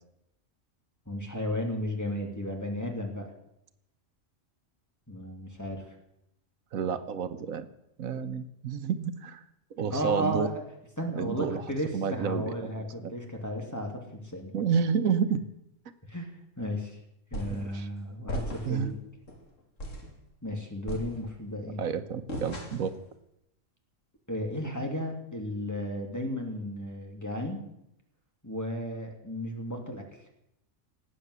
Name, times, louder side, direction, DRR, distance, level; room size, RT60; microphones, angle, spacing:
voice 1, 1.1-3.3 5.1-5.9 9.9-10.6 11.0-14.7 16.1-16.3 16.6-17.0 17.3-19.0 20.4-21.8 24.3-27.6 28.4-30.2, equal, 10° left, 2 dB, 2.8 m, -34 dB
voice 2, 6.7-7.7 8.0-9.4 9.7-10.5 11.1-11.6 11.9-12.7 13.0-13.1 14.5-15.4 17.5-17.9 18.7-19.0 21.8-22.9, right 6 dB, 85° right, 10 dB, 1.4 m, -30 dB
sound 1, 17.3-17.7 18.3-18.9 19.3-19.4 19.8-20.2 20.9-21.6 22.3-23.0, equal, 65° left, 3.0 m, -37 dB
18.5 x 9.0 x 8.1 m, 0.83 s
omnidirectional pair, 1.4 m